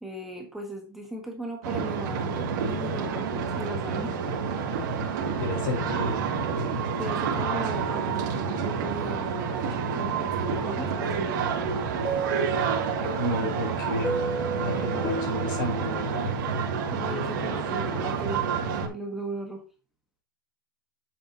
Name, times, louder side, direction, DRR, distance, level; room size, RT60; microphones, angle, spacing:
voice 1, 0.0-4.2 7.0-11.5 16.9-19.6, right 1 dB, ahead, 1 dB, 1.4 m, -37 dB
sound 1, 1.6-18.9, right 6 dB, 55° right, 2.4 m, -29 dB
voice 2, 5.4-6.2 13.2-14.2 14.6-16.3, left 1 dB, 65° left, 0 dB, 4.7 m, -31 dB
sound 2, 12.0-16.7, right 3 dB, 20° left, 2.7 m, -33 dB
8.0 x 7.4 x 2.9 m, 0.34 s
supercardioid pair, 155°, 12 cm